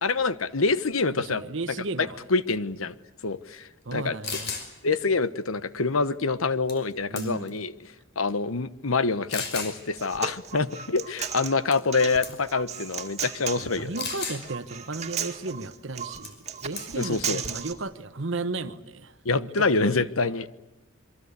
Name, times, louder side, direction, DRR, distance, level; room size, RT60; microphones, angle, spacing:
voice 1, 0.0-1.4 2.3-2.9 3.2-4.2 4.8-7.7 8.2-13.9 17.0-17.4 19.2-20.5, left 3 dB, 85° left, 14 dB, 1.1 m, -26 dB
voice 2, 1.1-2.2 3.8-4.5 7.1-7.5 13.6-20.1, right 3 dB, 60° right, 11 dB, 1.1 m, -35 dB
sound 1, 3.9-4.0 4.2-4.7 6.7-6.9 7.2-7.6 8.3-8.4 9.3-9.7 11.7-12.0 12.2-12.5 14.0-14.4 16.2-16.4 16.8-17.1, left 5 dB, 55° left, 5.4 m, -34 dB
Human voice, 9.7-17.7, right 8 dB, 35° right, 2.2 m, -35 dB
27.5 x 23.0 x 8.3 m, 0.97 s
head